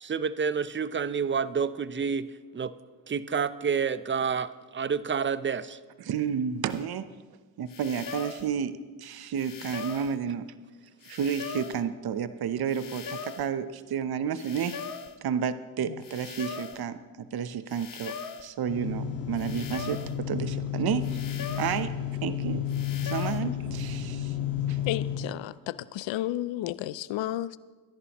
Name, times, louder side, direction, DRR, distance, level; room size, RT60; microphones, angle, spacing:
voice 1, 0.0-2.3 2.5-2.7 3.1-5.8, right 6 dB, 25° right, 15 dB, 0.7 m, -29 dB
voice 2, 6.0-7.1 7.6-10.5 11.0-14.8 15.2-21.9 22.2-22.6 23.0-24.4 24.7-24.8, right 7 dB, 50° right, 12 dB, 0.9 m, -31 dB
sound 1, 6.7-6.9 7.7-8.5 9.4-10.2 11.0-11.9 12.7-13.5 14.4-15.2 16.0-16.8 17.7-18.5 19.4-20.2 21.0-21.8 22.7-23.4, left 6 dB, 40° left, 1.1 m, -40 dB
sound 2, 18.7-25.2, left 9 dB, 85° left, 1.8 m, -32 dB
voice 3, 24.9-27.6, left 13 dB, 65° left, 18 dB, 0.7 m, -32 dB
22.5 x 11.0 x 3.1 m, 1.3 s
hypercardioid pair, 50°, 50 cm